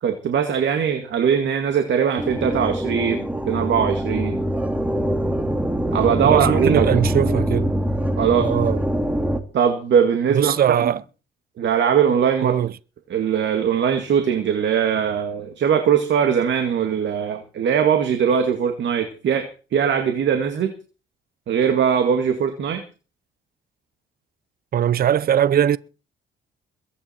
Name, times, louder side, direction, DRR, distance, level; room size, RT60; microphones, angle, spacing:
voice 1, 0.0-4.4 5.9-7.1 8.2-8.5 9.5-10.5 10.8-10.9 11.6-12.6 13.1-20.7 21.5-22.8, right 7 dB, 65° right, 2.1 m, -21 dB
sound 1, 2.2-9.4, equal, 5° right, 2.1 m, -23 dB
voice 2, 6.2-7.7 8.4-8.8 10.3-11.0 12.4-12.7 24.7-25.8, right 10 dB, 50° right, 0.6 m, -20 dB
22.0 x 9.8 x 4.5 m
cardioid pair, 90°, 20 cm